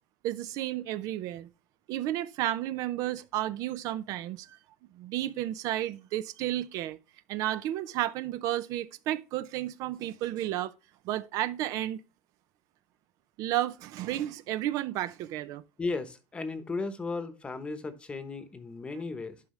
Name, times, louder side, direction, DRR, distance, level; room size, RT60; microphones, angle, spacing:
voice 1, 0.2-1.5 1.9-4.6 5.0-7.0 7.3-10.7 11.1-12.0 13.4-15.6, right 13 dB, 55° right, 0.5 m, -32 dB
voice 2, 15.8-19.4, left 3 dB, 15° left, 1.0 m, -35 dB
11.5 x 4.9 x 3.2 m
cardioid pair, 145°, 7 cm